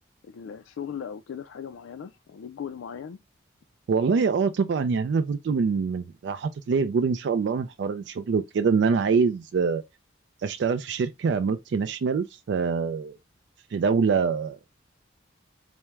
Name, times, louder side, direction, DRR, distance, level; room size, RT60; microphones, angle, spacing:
voice 1, 0.2-3.2, left 7 dB, 80° left, 0.3 m, -38 dB
voice 2, 3.9-9.8 10.4-13.2 13.7-14.6, right 5 dB, 60° right, 0.3 m, -25 dB
4.3 x 2.1 x 3.4 m
head